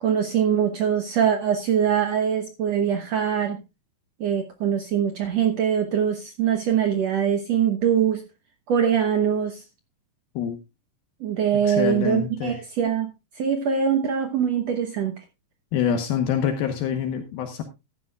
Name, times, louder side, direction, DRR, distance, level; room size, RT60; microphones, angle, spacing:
voice 1, 0.0-3.6 4.2-8.2 8.7-9.6 11.2-15.2, right 8 dB, 75° right, 5 dB, 1.5 m, -23 dB
voice 2, 11.6-12.6 15.7-17.6, left 8 dB, 75° left, 6 dB, 2.8 m, -26 dB
14.5 x 12.5 x 2.3 m, 0.26 s
omnidirectional pair, 4.4 m